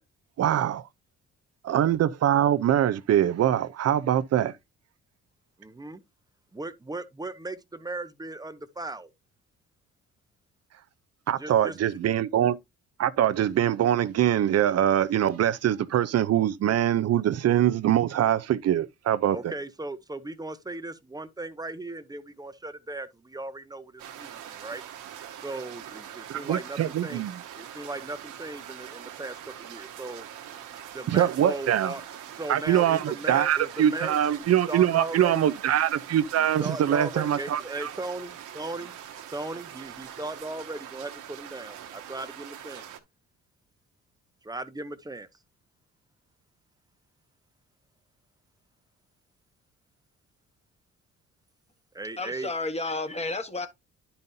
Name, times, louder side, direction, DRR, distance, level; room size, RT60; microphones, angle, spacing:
voice 1, 0.4-0.8 1.6-4.5 11.3-12.6 13.0-19.4 26.3-27.4 31.1-31.9 32.5-37.9, right 11 dB, 55° right, 0.6 m, -23 dB
voice 2, 5.6-6.0 6.5-9.1 11.4-11.8 19.3-24.8 25.4-27.3 27.5-30.3 30.9-32.0 32.4-35.5 36.4-39.0 39.3-42.8 44.4-45.3 51.9-52.5, right 2 dB, 15° right, 0.8 m, -37 dB
sound 1, 24.0-43.0, right 10 dB, 90° right, 1.3 m, -43 dB
voice 3, 52.2-53.7, left 2 dB, 20° left, 1.4 m, -31 dB
10.5 x 5.5 x 2.7 m
cardioid pair, 90°, 30 cm